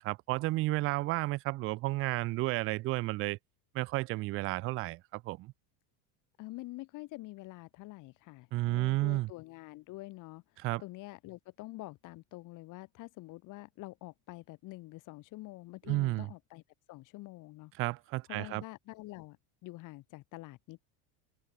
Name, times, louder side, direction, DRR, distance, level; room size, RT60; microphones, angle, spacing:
voice 1, 0.0-3.4 3.7-5.5 8.5-9.3 10.6-10.8 15.9-16.3 17.8-18.6, right 19 dB, 30° right, 0.6 m, -32 dB
voice 2, 6.4-10.4 10.8-16.6 16.9-17.7 18.3-19.4 19.6-20.8, left 19 dB, 40° left, 3.8 m, -46 dB
cardioid pair, 175°, 47 cm